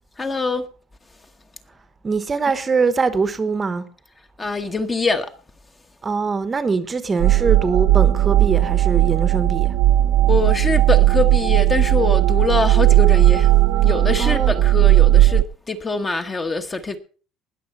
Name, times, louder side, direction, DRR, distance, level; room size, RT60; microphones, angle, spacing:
voice 1, 0.2-0.6 4.4-5.3 10.3-13.5 13.8-17.0, left 3 dB, 15° left, 1.1 m, -24 dB
voice 2, 2.0-3.8 6.0-9.7 14.2-14.6, right 4 dB, 20° right, 1.0 m, -22 dB
sound 1, 7.2-15.4, right 14 dB, 65° right, 0.9 m, -16 dB
19.5 x 6.9 x 5.4 m
cardioid pair, 165°, 0 cm